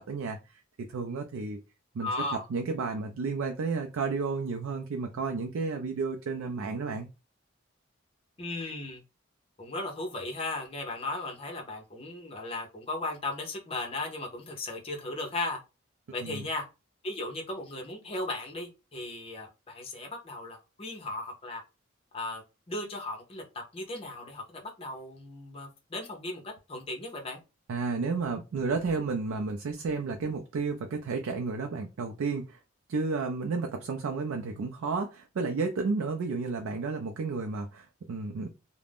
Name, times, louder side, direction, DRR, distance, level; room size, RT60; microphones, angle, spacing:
voice 1, 0.0-1.6 1.9-7.1 16.2-16.5 27.7-32.6 32.9-38.5, right 4 dB, 80° right, 4 dB, 0.4 m, -32 dB
voice 2, 2.0-2.5 8.4-9.0 9.6-15.6 16.1-16.6 17.0-21.6 22.1-23.4 23.7-27.4, left 2 dB, 25° left, 1 dB, 0.7 m, -36 dB
2.4 x 2.1 x 3.4 m, 0.28 s
head